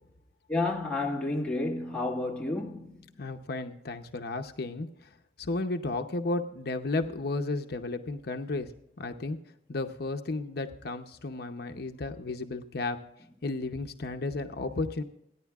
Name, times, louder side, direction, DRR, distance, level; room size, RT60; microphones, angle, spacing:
voice 1, 0.5-3.1, left 2 dB, 5° left, 1.8 m, -31 dB
voice 2, 3.2-4.9 5.4-8.7 9.0-9.4 9.7-13.0 13.4-15.0, left 2 dB, 60° left, 0.7 m, -33 dB
28.5 x 10.0 x 2.4 m
head